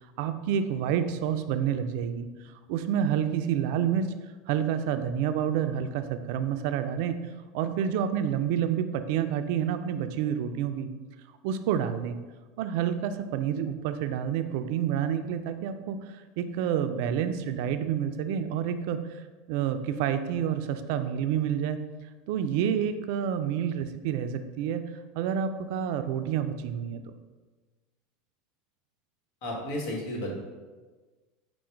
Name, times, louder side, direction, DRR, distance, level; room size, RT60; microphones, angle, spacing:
voice 1, 0.2-2.3 2.7-4.1 4.5-7.1 7.5-10.9 11.4-12.2 12.6-16.0 16.4-19.0 19.5-21.8 22.3-24.8 25.1-27.0, right 9 dB, 65° right, 9 dB, 0.3 m, -28 dB
voice 2, 29.4-30.3, left 1 dB, 70° left, -1 dB, 1.1 m, -32 dB
4.7 x 2.1 x 4.4 m, 1.3 s
hypercardioid pair, 95°, 0 cm